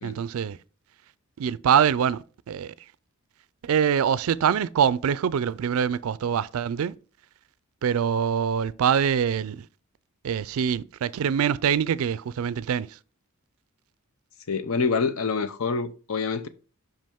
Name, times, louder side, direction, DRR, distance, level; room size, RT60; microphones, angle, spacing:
voice 1, 0.0-0.6 1.4-2.7 3.6-6.9 7.8-9.7 10.2-12.9, right 8 dB, 75° right, 0.3 m, -24 dB
voice 2, 14.5-16.5, left 4 dB, 75° left, 0.6 m, -26 dB
5.8 x 5.3 x 3.6 m
head